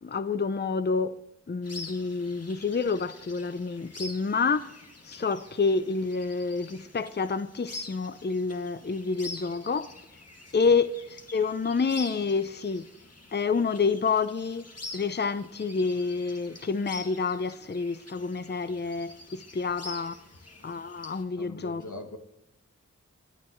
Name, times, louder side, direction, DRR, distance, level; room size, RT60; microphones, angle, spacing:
voice 1, 0.0-1.1 1.5-4.7 5.1-9.9 10.5-12.9 13.3-14.7 14.9-20.2 20.6-21.8, left 4 dB, 35° left, 0.6 m, -28 dB
sound 1, 1.6-21.2, left 2 dB, 55° left, 2.0 m, -46 dB
voice 2, 21.3-22.2, left 2 dB, 90° left, 1.3 m, -42 dB
24.5 x 9.8 x 3.2 m
wide cardioid pair, 45°, 29 cm